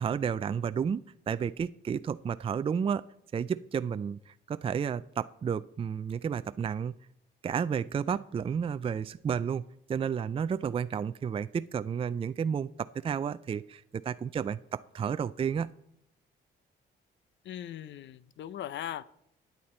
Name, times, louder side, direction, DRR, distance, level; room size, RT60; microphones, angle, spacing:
voice 1, 0.0-3.0 3.3-6.9 7.4-9.6 9.9-15.7, right 7 dB, 30° right, 0.4 m, -32 dB
voice 2, 17.4-19.0, left 10 dB, 70° left, 0.6 m, -39 dB
12.5 x 9.6 x 4.3 m
cardioid pair, 90°, 20 cm